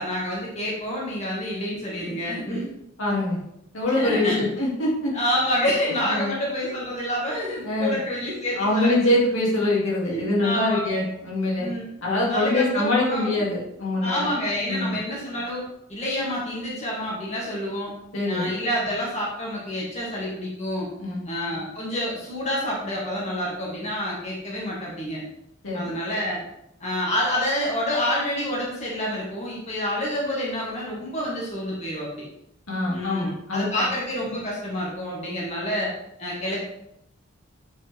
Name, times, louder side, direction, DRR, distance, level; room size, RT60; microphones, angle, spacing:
voice 1, 0.0-2.6 4.0-4.5 5.1-9.0 10.0-11.0 11.6-11.9 12.3-13.4 14.0-15.6 15.9-17.9 18.3-20.9 21.3-25.2 25.7-26.4 26.8-32.2 32.9-35.9 36.2-36.6, equal, 35° left, -5 dB, 2.2 m, -28 dB
voice 2, 3.0-3.4 3.7-5.1 6.1-6.3 7.6-8.0 8.5-11.7 12.0-14.3 14.7-15.0 18.1-18.5 21.0-21.3 25.6-25.9 32.7-33.9, left 1 dB, 85° left, -5 dB, 2.8 m, -24 dB
8.8 x 5.2 x 3.6 m, 0.80 s
head